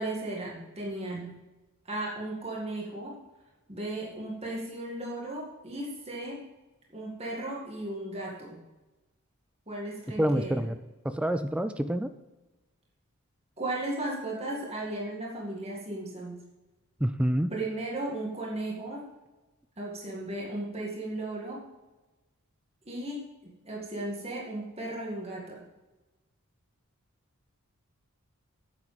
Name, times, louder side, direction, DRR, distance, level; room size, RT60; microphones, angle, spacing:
voice 1, 0.0-1.4 1.9-3.2 3.7-6.4 6.9-8.6 9.7-10.7 13.6-16.4 17.5-19.0 19.8-21.6 22.9-23.2 23.6-25.6, right 1 dB, 30° right, -3 dB, 2.1 m, -35 dB
voice 2, 10.2-10.8 11.0-12.1 17.0-17.5, equal, 5° right, 11 dB, 0.3 m, -27 dB
9.7 x 7.6 x 5.2 m, 1.1 s
head